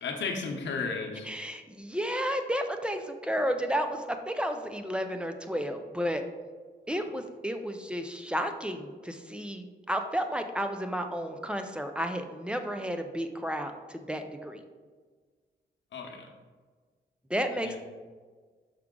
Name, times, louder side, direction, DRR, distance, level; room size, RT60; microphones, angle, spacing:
voice 1, 0.0-1.3 15.9-16.3 17.6-17.8, left 4 dB, 90° left, 1 dB, 0.9 m, -34 dB
voice 2, 1.2-6.2 6.9-14.6 17.3-17.8, equal, 5° right, 6 dB, 0.4 m, -32 dB
5.9 x 4.9 x 3.7 m, 1.5 s
wide cardioid pair, 155°, 18 cm